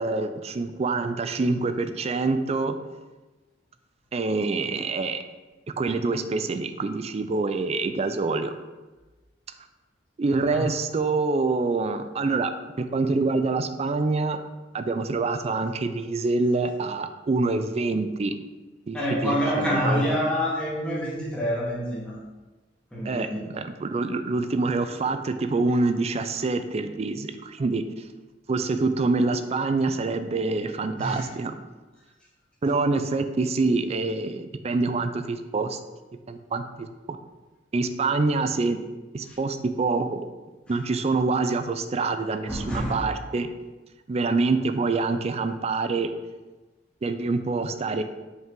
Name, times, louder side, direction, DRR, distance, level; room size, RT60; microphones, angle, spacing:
voice 1, 0.0-2.8 4.1-5.2 5.8-8.5 10.2-12.5 12.8-14.4 14.7-18.4 18.9-20.2 23.0-27.8 28.5-31.5 32.6-35.8 36.3-37.2 37.7-38.8 39.1-40.2 40.7-43.5 44.1-46.1 47.0-48.0, right 3 dB, 35° right, 9 dB, 0.4 m, -26 dB
voice 2, 18.9-22.2 22.9-23.4 30.9-31.3 39.3-39.4 42.5-43.0, equal, 5° left, -7 dB, 1.5 m, -27 dB
5.5 x 4.7 x 3.7 m, 1.2 s
head